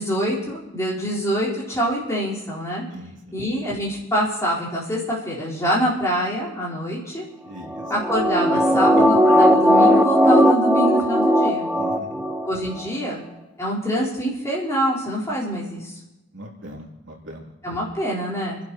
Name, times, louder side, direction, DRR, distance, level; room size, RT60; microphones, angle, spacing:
voice 1, 0.0-2.9 3.3-7.3 7.9-11.7 12.4-13.2 13.6-16.0 17.6-18.6, equal, 15° left, -6 dB, 4.3 m, -25 dB
voice 2, 2.9-3.3 7.4-7.8 8.5-9.0 11.7-12.2 16.3-17.5, right 1 dB, 65° right, -3 dB, 3.1 m, -39 dB
sound 1, 7.7-12.5 12.8-12.9, equal, 5° right, 0.7 m, -17 dB
29.5 x 11.5 x 3.1 m, 0.98 s
head